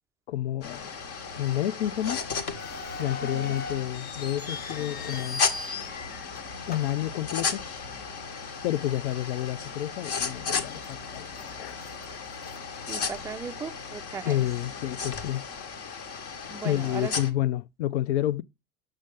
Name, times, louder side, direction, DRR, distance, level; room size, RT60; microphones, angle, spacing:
voice 1, 0.3-0.9 1.4-2.2 3.0-5.4 6.7-7.6 8.6-11.8 14.3-15.5 16.6-18.4, left 13 dB, 70° left, 0.5 m, -29 dB
sound 1, 0.6-17.3, left 5 dB, 45° left, 1.3 m, -35 dB
sound 2, 1.0-15.3, equal, 85° left, 4.6 m, -50 dB
sound 3, 2.5-7.9 8.2-8.3 9.0-9.2 9.7-9.8 10.4-11.0 11.3-13.8, left 3 dB, 25° left, 0.7 m, -40 dB
voice 2, 3.2-3.6 12.9-14.4 16.5-17.1, right 6 dB, 10° right, 0.3 m, -37 dB
7.5 x 6.3 x 3.4 m
hypercardioid pair, 75°, 34 cm